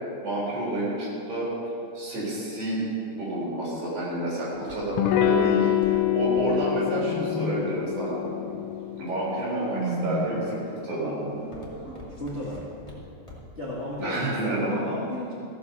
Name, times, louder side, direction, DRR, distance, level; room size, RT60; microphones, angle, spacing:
voice 1, 0.2-1.5 1.9-2.8 3.1-8.2 9.0-11.3 14.0-14.7, right 2 dB, 45° right, -6 dB, 5.0 m, -29 dB
Walk footsteps, 3.6-8.5 9.1-9.6 10.1-10.5 10.8-13.7 14.0-14.1, left 2 dB, 15° left, 0.9 m, -46 dB
Electric guitar / Strum, 5.0-10.3, left 12 dB, 90° left, 2.9 m, -26 dB
sound 1, 6.1-7.7 8.9-10.4 11.3-11.9, equal, 5° right, 2.7 m, -35 dB
voice 2, 12.2-12.6 13.5-15.3, left 1 dB, 45° left, -8 dB, 0.8 m, -33 dB
15.5 x 7.2 x 6.8 m, 2.6 s
omnidirectional pair, 5.1 m